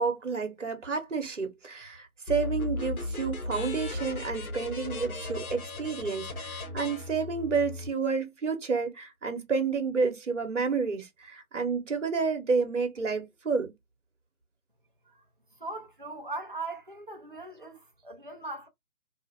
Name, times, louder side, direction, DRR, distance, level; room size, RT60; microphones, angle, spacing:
voice 1, 0.0-13.7, right 5 dB, 55° right, 1.0 m, -30 dB
sound 1, 2.3-7.9, left 2 dB, 75° left, 0.9 m, -36 dB
voice 2, 15.6-18.7, right 2 dB, 40° right, 0.5 m, -39 dB
2.5 x 2.3 x 2.8 m
figure-of-eight pair, 155°, 43 cm